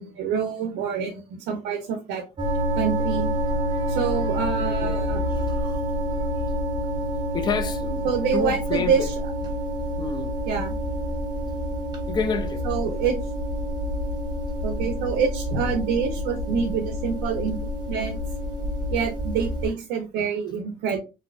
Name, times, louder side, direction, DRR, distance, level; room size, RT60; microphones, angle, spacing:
voice 1, 0.0-2.2 2.8-3.3 3.9-5.2 8.0-9.1 10.5-10.7 12.6-13.2 14.6-17.6 17.9-18.2 18.9-21.0, right 6 dB, 90° right, 0.5 m, -26 dB
sound 1, 2.4-19.7, equal, 25° right, 0.7 m, -28 dB
voice 2, 3.5-6.4 7.0-7.1 7.3-8.1 8.3-9.1 9.5-9.6 10.0-10.3 12.1-12.6, left 5 dB, 25° left, 0.4 m, -31 dB
2.6 x 2.1 x 2.3 m
cardioid pair, 110°, 17 cm